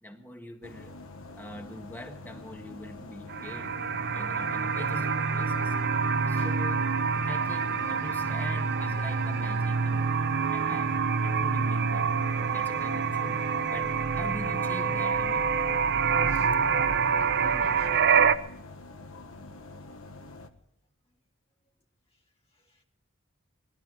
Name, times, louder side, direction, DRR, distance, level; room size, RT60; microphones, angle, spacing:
voice 1, 0.0-1.0 1.3-3.7 4.1-5.8 6.3-6.9 7.2-10.1 10.5-12.1 12.5-15.5, left 1 dB, 10° left, 1.8 m, -44 dB
sound 1, 0.6-20.5, left 2 dB, 65° left, 1.5 m, -45 dB
sound 2, 3.3-18.4, right 5 dB, 50° right, 0.8 m, -26 dB
voice 2, 17.2-18.2 22.5-22.8, equal, 30° left, 1.4 m, -48 dB
19.5 x 13.0 x 4.8 m
head